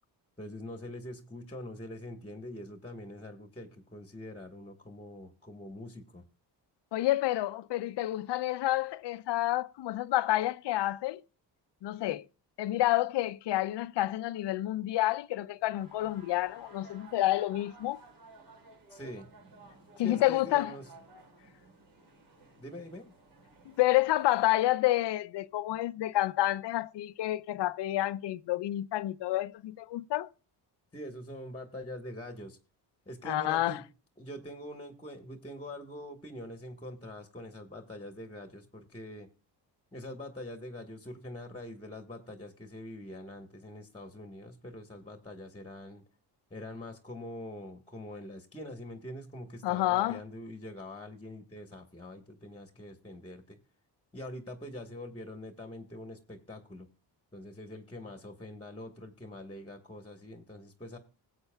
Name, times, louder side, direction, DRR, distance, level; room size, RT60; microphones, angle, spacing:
voice 1, 0.4-6.2 18.9-19.3 20.0-20.8 22.6-23.1 30.9-32.6 33.1-33.8 34.2-39.3 39.9-46.0 46.5-53.6 54.1-56.9 57.3-61.0, left 1 dB, 15° left, 1.3 m, -44 dB
voice 2, 6.9-11.2 11.8-12.2 12.6-18.0 20.0-20.7 23.8-30.3 33.2-33.8 49.6-50.2, left 15 dB, 75° left, 0.6 m, -29 dB
sound 1, 15.7-24.5, right 2 dB, 60° right, 4.9 m, -55 dB
20.0 x 8.1 x 2.3 m
cardioid pair, 115°, 43 cm